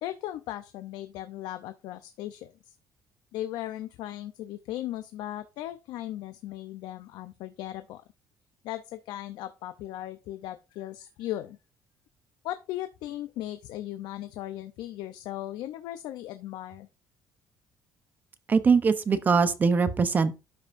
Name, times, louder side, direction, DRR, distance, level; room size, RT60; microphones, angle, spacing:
voice 1, 0.0-2.8 3.3-8.0 8.6-11.6 12.4-16.9, left 13 dB, 80° left, 0.6 m, -37 dB
voice 2, 18.5-20.4, right 5 dB, 25° right, 0.8 m, -22 dB
12.0 x 5.4 x 2.6 m
cardioid pair, 160°, 7 cm